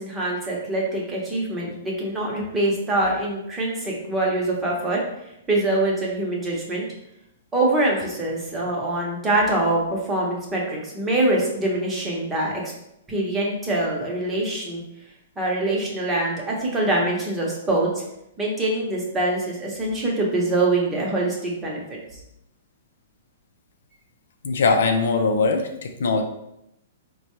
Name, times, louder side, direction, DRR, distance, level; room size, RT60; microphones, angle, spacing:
voice 1, 0.0-6.8 7.5-12.7 13.1-14.8 15.4-18.0 18.4-22.0, right 2 dB, 15° right, -3 dB, 0.9 m, -24 dB
voice 2, 24.4-26.2, left 4 dB, 75° left, 5 dB, 0.5 m, -21 dB
4.0 x 2.2 x 3.0 m, 0.82 s
hypercardioid pair, 145°, 0 cm